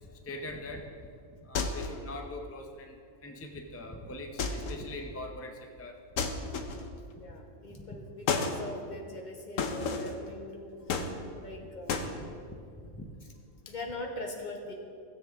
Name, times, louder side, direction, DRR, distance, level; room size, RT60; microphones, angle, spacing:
voice 1, 0.3-0.9 1.4-3.0 3.2-5.9 7.3-7.4 12.0-12.3 12.8-13.1, left 1 dB, 20° left, 3 dB, 0.4 m, -42 dB
sound 1, 1.5-2.1 4.4-4.9 6.2-7.0 8.3-8.6 9.6-10.2 10.9-11.5 11.9-12.1, left 4 dB, 75° left, 1.2 m, -32 dB
voice 2, 7.2-11.9 13.7-14.7, left 2 dB, 35° left, 0 dB, 1.4 m, -42 dB
16.5 x 7.4 x 3.5 m, 2.3 s
omnidirectional pair, 1.3 m